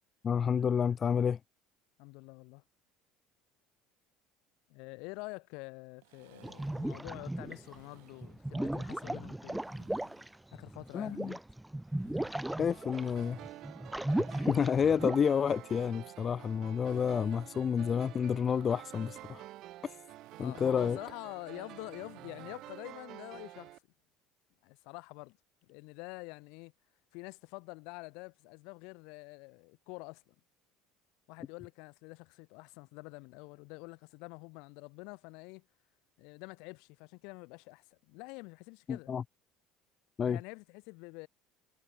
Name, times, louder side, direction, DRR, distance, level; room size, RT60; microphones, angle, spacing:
voice 1, 0.2-1.4 10.9-11.3 12.6-13.4 14.3-19.4 20.4-21.0 38.9-39.2 40.2-40.4, left 7 dB, 35° left, 0.3 m, -29 dB
voice 2, 2.0-2.6 4.7-9.6 10.5-11.4 20.4-23.8 24.6-25.4 25.6-26.7 27.1-30.3 31.3-35.7 36.2-39.1 40.3-41.3, left 30 dB, 75° left, 3.7 m, -47 dB
sound 1, 6.0-8.4 9.5-11.3 11.8-13.8 15.2-23.1, right 25 dB, 85° right, 3.6 m, -61 dB
sound 2, 6.4-7.8 8.2-15.2, right 1 dB, 5° right, 1.2 m, -36 dB
sound 3, 12.7-23.8, right 15 dB, 60° right, 1.1 m, -49 dB
supercardioid pair, 105°, 0 cm